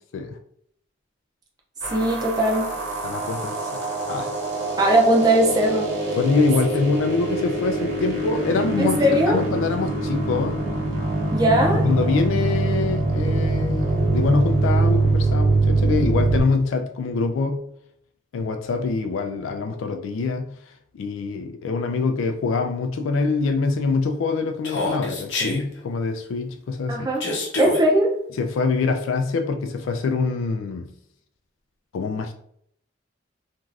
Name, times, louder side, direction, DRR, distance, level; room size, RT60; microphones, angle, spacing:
sound 1, 1.8-16.4, right 2 dB, 70° right, 1.0 m, -24 dB
voice 1, 1.9-2.8 4.8-5.9 8.8-9.4 11.3-11.8 26.9-27.3 27.6-28.2, right 1 dB, 20° right, 0.4 m, -19 dB
voice 2, 3.0-3.7 4.1-4.3 6.2-9.0 9.3-10.6 11.8-17.6 18.3-20.6 20.9-27.1 28.4-30.9 31.9-32.3, left 4 dB, 80° left, 0.3 m, -24 dB
Human voice, 24.6-25.6 27.2-27.8, left 2 dB, 65° left, 0.7 m, -26 dB
2.5 x 2.3 x 3.2 m
head